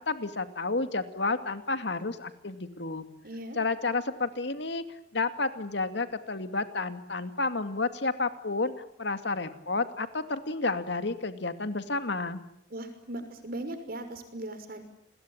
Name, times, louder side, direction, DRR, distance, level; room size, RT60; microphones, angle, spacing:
voice 1, 0.1-3.0 3.6-4.8 5.1-8.7 9.0-12.4, left 3 dB, 70° left, 9 dB, 2.5 m, -31 dB
voice 2, 3.2-3.6 12.7-14.8, right 1 dB, 55° right, 8 dB, 5.8 m, -38 dB
29.5 x 22.0 x 8.9 m, 0.70 s
head